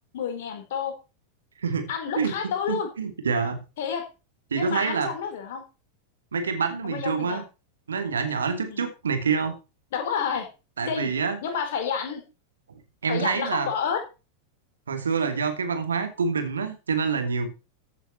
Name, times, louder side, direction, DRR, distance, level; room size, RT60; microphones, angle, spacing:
voice 1, 0.1-0.9 1.9-2.9 3.8-4.0 4.5-5.6 6.8-7.4 8.7-8.8 9.9-10.5 10.9-11.1 11.4-12.2 13.1-14.0, left 7 dB, 55° left, 5 dB, 4.1 m, -29 dB
voice 2, 1.6-3.6 4.5-5.1 6.3-7.5 7.9-9.5 10.8-11.4 12.7-13.7 14.9-17.5, right 5 dB, 70° right, 7 dB, 2.8 m, -27 dB
15.0 x 8.1 x 4.4 m, 0.31 s
figure-of-eight pair, 90°, 0 cm